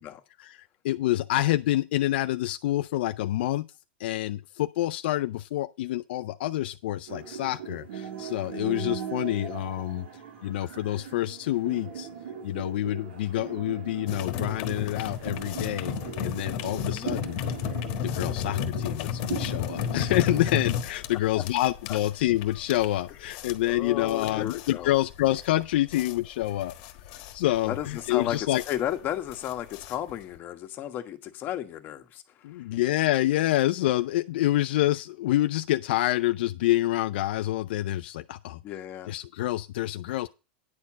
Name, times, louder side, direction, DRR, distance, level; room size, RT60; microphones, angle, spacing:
voice 1, 0.4-3.6 4.0-10.1 10.4-12.1 12.4-15.9 16.2-17.4 18.0-26.7 27.3-28.6 32.4-38.6 39.1-40.3, left 15 dB, 75° left, 0.4 m, -27 dB
sound 1, 7.1-20.5, right 7 dB, 85° right, 2.9 m, -39 dB
sound 2, 14.1-30.4, left 8 dB, 55° left, 1.4 m, -33 dB
voice 2, 16.5-17.2 21.3-21.4 21.9-22.0 23.7-24.9 27.6-32.6 38.6-39.1, left 11 dB, 35° left, 1.3 m, -34 dB
9.6 x 4.4 x 7.4 m
supercardioid pair, 135°, 6 cm